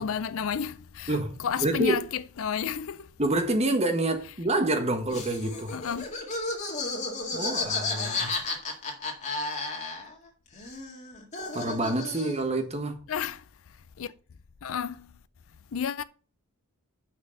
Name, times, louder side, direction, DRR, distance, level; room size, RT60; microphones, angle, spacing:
voice 1, 0.0-3.1 5.7-6.1 13.1-13.4 14.0-14.1 14.6-15.1 15.7-16.0, left 7 dB, 65° left, 0.5 m, -31 dB
voice 2, 1.1-2.0 3.2-5.7 7.3-8.3 11.5-13.0, right 2 dB, 30° right, 1.4 m, -27 dB
Laughter, 5.1-10.3 10.5-12.5, left 3 dB, 30° left, 2.1 m, -33 dB
6.1 x 6.1 x 6.5 m
head